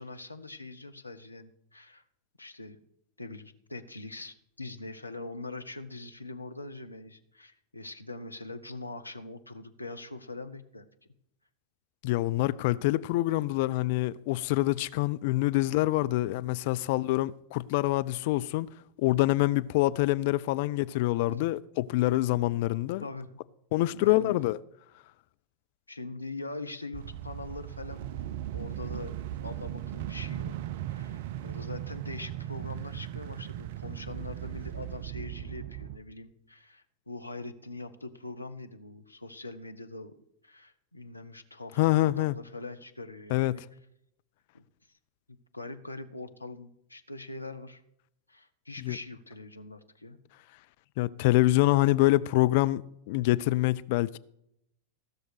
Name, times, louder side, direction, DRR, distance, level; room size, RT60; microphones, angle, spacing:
voice 1, 0.0-2.0 2.4-2.8 3.2-10.9 21.3-21.4 23.0-23.4 23.8-24.4 25.9-28.2 28.5-30.5 30.9-40.1 40.4-43.6 44.5-44.6 45.3-47.8 48.3-50.2, left 2 dB, 85° left, 0.9 m, -42 dB
voice 2, 12.0-18.7 19.0-23.0 23.7-24.6 41.8-42.3 43.3-43.6 48.8-49.0 51.0-54.2, left 17 dB, 50° left, 0.3 m, -26 dB
sound 1, 26.9-36.0, right 12 dB, 50° right, 0.5 m, -38 dB
16.0 x 6.4 x 6.3 m
figure-of-eight pair, 90°, 0 cm